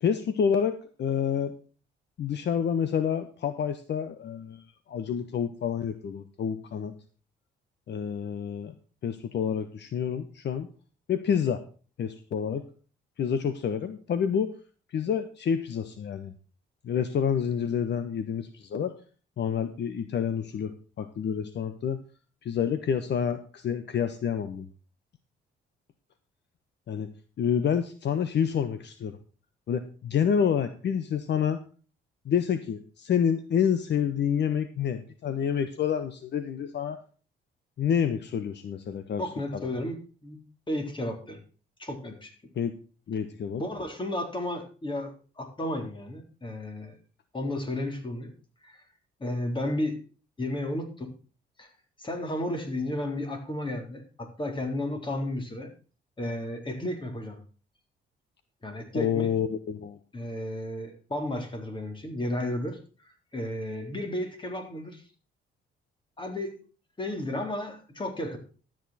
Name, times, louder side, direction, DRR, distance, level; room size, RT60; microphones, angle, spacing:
voice 1, 0.0-1.5 2.2-7.0 7.9-8.7 9.0-10.7 11.1-11.6 12.0-12.6 13.2-14.5 14.9-16.3 16.8-18.9 19.4-22.0 22.4-24.7 26.9-27.1 27.4-29.2 29.7-31.6 32.2-37.0 37.8-39.2 39.5-39.7 42.5-42.7 43.1-43.6 58.9-60.0, left 7 dB, 60° left, 10 dB, 1.2 m, -28 dB
voice 2, 39.2-40.0 40.2-40.4 40.7-41.4 41.8-42.3 43.6-47.0 47.3-48.3 48.6-48.8 49.2-50.0 50.4-51.1 51.6-51.7 52.0-55.7 56.2-57.4 58.6-59.3 60.1-62.8 63.3-65.0 66.2-66.6 67.0-68.4, left 1 dB, 25° left, 5 dB, 3.8 m, -33 dB
13.0 x 9.0 x 4.3 m, 0.37 s
cardioid pair, 90°, 20 cm